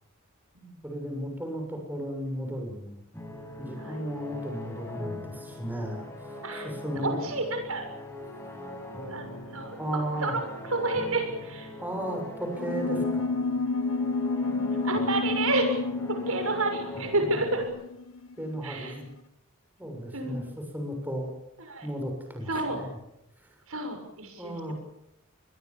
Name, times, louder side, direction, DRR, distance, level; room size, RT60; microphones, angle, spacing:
voice 1, 0.8-3.0 3.6-7.2 9.8-10.4 11.8-13.2 17.3-17.4 18.4-19.0 19.8-21.3 21.8-23.0 23.4-23.5 24.4-24.7, equal, 10° right, 2 dB, 6.8 m, -35 dB
sound 1, 3.1-17.6, left 2 dB, 10° left, 7.2 m, -41 dB
voice 2, 6.4-7.9 9.1-9.8 10.2-10.4 10.7-11.7 14.8-15.8 16.3-17.7 18.6-18.9 20.1-20.4 21.6-21.9 22.5-22.8 23.7-24.7, right 2 dB, 80° right, 5 dB, 6.8 m, -30 dB
sound 2, 12.6-18.5, left 3 dB, 75° left, 1.3 m, -30 dB
27.0 x 22.0 x 7.3 m, 0.84 s
head